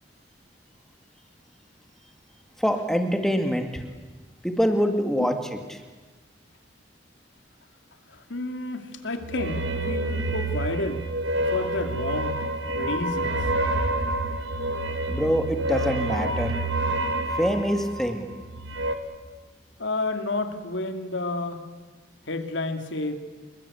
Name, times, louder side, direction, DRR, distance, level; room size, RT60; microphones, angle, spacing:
voice 1, 2.6-3.8 4.4-5.3 5.7-5.8 15.1-16.5 17.4-18.3, equal, ahead, 5 dB, 2.2 m, -24 dB
voice 2, 8.1-11.0 11.4-13.3 19.8-21.6 22.3-23.1, left 2 dB, 85° left, 7 dB, 2.6 m, -31 dB
sound 1, 9.2-19.0, right 1 dB, 70° right, 2.2 m, -28 dB
27.5 x 21.5 x 8.6 m, 1.3 s
head